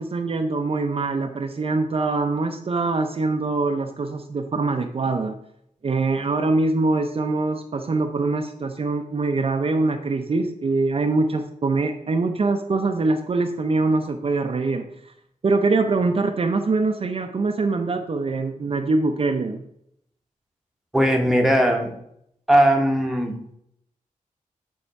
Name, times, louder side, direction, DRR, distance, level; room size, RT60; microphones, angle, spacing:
voice 1, 0.0-5.4 5.8-15.1 15.4-19.6, right 3 dB, 45° right, 5 dB, 0.6 m, -23 dB
voice 2, 20.9-21.9 22.5-23.6, equal, ahead, 2 dB, 0.9 m, -19 dB
7.8 x 3.5 x 4.6 m, 0.74 s
wide cardioid pair, 120°, 14 cm